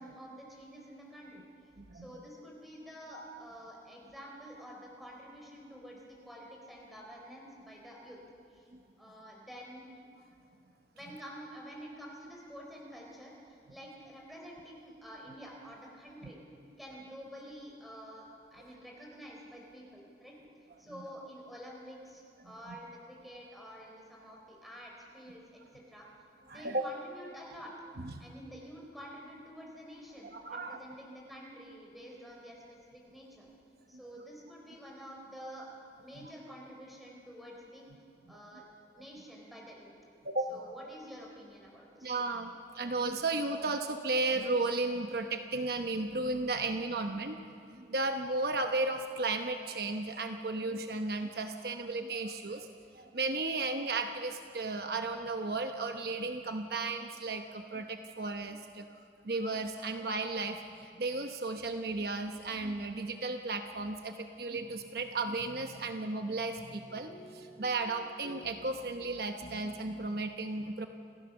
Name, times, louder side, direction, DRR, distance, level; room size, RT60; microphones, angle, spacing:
voice 1, 0.0-1.4 1.9-8.2 8.5-8.7 9.0-9.8 10.9-16.4 16.8-20.3 20.8-26.1 26.5-27.7 28.2-33.5 33.9-35.7 36.0-37.8 38.3-38.6 39.0-39.9 40.5-42.2, equal, ahead, -2 dB, 4.0 m, -49 dB
voice 2, 26.5-26.8 28.0-28.2 30.2-30.8 36.2-36.3 38.3-38.4 40.2-40.7 42.0-47.4 47.7-70.9, right 3 dB, 60° right, 6 dB, 1.0 m, -34 dB
sound 1, 64.5-70.1, equal, 65° left, 2.2 m, -52 dB
27.5 x 15.5 x 7.0 m, 2.4 s
head